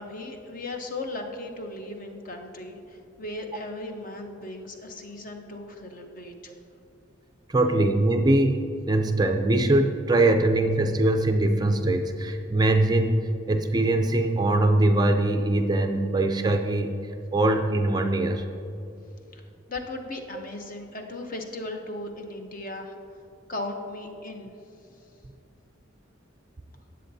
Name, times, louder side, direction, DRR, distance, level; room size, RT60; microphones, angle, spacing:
voice 1, 0.0-6.5 19.3-19.4 19.7-22.9 23.5-24.5, left 2 dB, 45° left, 4 dB, 0.8 m, -37 dB
voice 2, 7.5-16.9 17.3-18.4, right 2 dB, 20° right, 5 dB, 0.4 m, -22 dB
18.0 x 7.8 x 2.7 m, 2.6 s
head